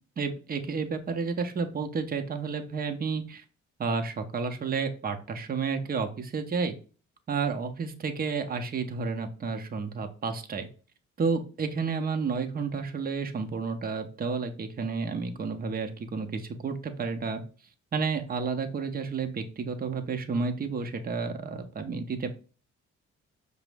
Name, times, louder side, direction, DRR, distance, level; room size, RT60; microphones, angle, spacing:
voice 1, 0.2-3.4 3.8-6.7 7.3-10.7 11.2-17.4 17.9-22.4, right 5 dB, 30° right, 6 dB, 0.6 m, -31 dB
5.2 x 2.0 x 3.3 m, 0.38 s
cardioid pair, 90°, 30 cm